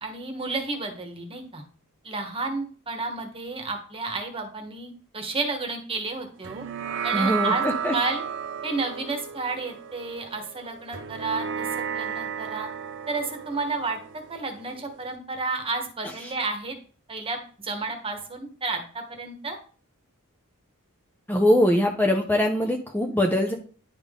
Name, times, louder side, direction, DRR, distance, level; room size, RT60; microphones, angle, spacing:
voice 1, 0.0-1.6 2.0-6.6 7.0-7.6 7.9-8.2 8.6-12.7 13.1-14.0 14.3-16.7 17.1-19.6, right 3 dB, 25° right, 4 dB, 1.2 m, -31 dB
sound 1, 6.4-15.2, right 7 dB, 60° right, 0.7 m, -33 dB
voice 2, 7.1-7.9 21.3-23.5, left 1 dB, 10° left, 2 dB, 0.5 m, -22 dB
10.5 x 3.6 x 3.6 m, 0.41 s
head